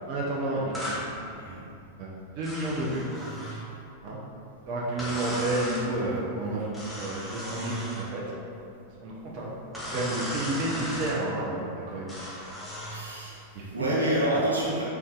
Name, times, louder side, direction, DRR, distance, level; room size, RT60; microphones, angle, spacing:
voice 1, 0.1-1.0 2.0-3.1 4.0-4.2 4.7-8.2 9.0-9.5 9.9-12.3 13.5-13.8 14.3-14.4, right 1 dB, 45° right, -4 dB, 0.5 m, -31 dB
sound 1, 0.7-1.0 2.4-3.6 5.0-5.9 6.7-8.1 9.7-11.2 12.1-13.0, equal, 5° left, 1.0 m, -36 dB
voice 2, 12.8-14.8, right 1 dB, 80° right, -6 dB, 0.7 m, -28 dB
3.9 x 3.3 x 2.3 m, 2.6 s
figure-of-eight pair, 90°, 0 cm